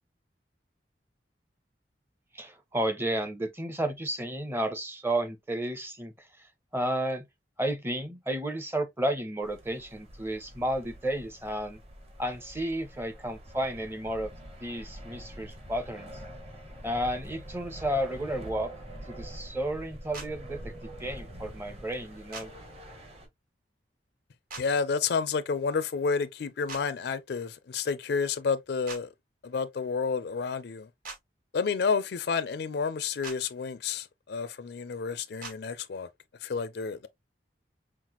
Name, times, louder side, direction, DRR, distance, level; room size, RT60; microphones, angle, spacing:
voice 1, 2.3-7.2 7.6-11.8 12.2-14.3 14.6-16.1 16.8-18.7 19.1-22.5, right 1 dB, 15° right, 0.7 m, -32 dB
sound 1, 9.4-23.3, right 1 dB, 35° right, 1.2 m, -45 dB
sound 2, 20.1-20.3 22.3-22.5 24.5-24.7 26.7-26.8 28.9-29.0 31.0-31.2 33.2-33.4 35.4-35.6, right 4 dB, 50° right, 1.4 m, -40 dB
voice 2, 24.6-29.1 29.4-30.9 31.5-36.1 36.4-37.1, left 5 dB, 60° left, 0.4 m, -30 dB
5.7 x 2.0 x 3.0 m
head